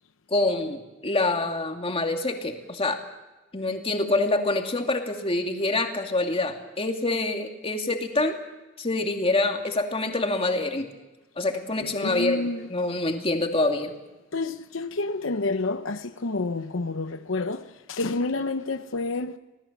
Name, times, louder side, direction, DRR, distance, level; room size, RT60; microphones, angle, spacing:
voice 1, 0.3-3.0 3.5-8.4 8.8-10.9 11.4-12.4 12.7-13.9, left 2 dB, 30° left, 2.5 m, -26 dB
voice 2, 11.8-12.7 14.3-19.4, left 3 dB, 80° left, 0.9 m, -29 dB
26.5 x 18.5 x 7.4 m
head